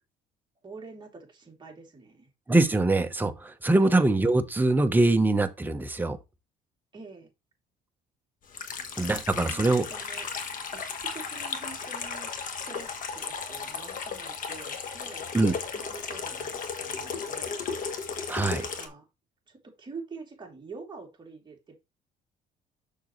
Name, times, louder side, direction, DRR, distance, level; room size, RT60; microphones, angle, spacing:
voice 1, 0.6-2.3 3.8-4.0 6.9-7.3 9.4-10.3 10.7-12.9 13.2-17.6 18.7-19.1 19.5-21.8, right 4 dB, 25° right, 2.8 m, -46 dB
voice 2, 2.5-6.2 9.0-9.9 15.3-15.6 18.3-18.7, right 2 dB, 10° right, 0.9 m, -23 dB
Water tap faucet / Sink (filling or washing), 8.5-18.9, left 5 dB, 55° left, 1.3 m, -35 dB
6.6 x 6.2 x 3.1 m
cardioid pair, 110°, 17 cm